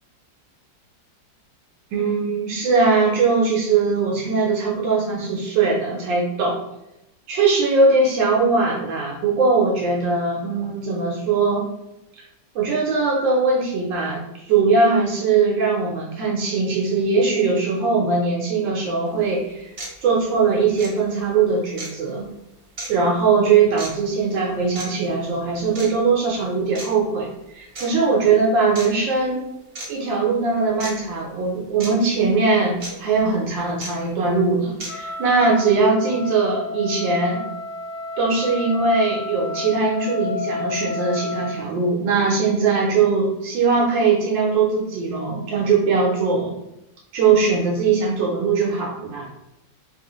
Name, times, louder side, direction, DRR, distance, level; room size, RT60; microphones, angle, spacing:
voice 1, 1.9-6.6 7.3-11.6 12.5-19.7 20.0-22.3 22.9-29.4 29.9-37.4 38.2-46.6 47.1-49.3, right 4 dB, 80° right, -3 dB, 1.4 m, -20 dB
sound 1, 19.1-19.2 19.8-19.9 20.7-20.9 21.8-21.9 22.8-22.9 23.8-23.9 24.7-24.9 25.7-25.9 26.7-26.9 27.7-27.9 28.7-28.9 29.7-29.9 30.8-30.9 31.8-31.9 32.8-32.9 33.8-33.9 34.8-34.9, right 2 dB, 45° right, 0.6 m, -32 dB
Wind instrument woodwind instrument, 34.9-41.7, left 4 dB, 75° left, 1.2 m, -31 dB
4.0 x 2.3 x 2.9 m, 0.88 s
omnidirectional pair, 2.0 m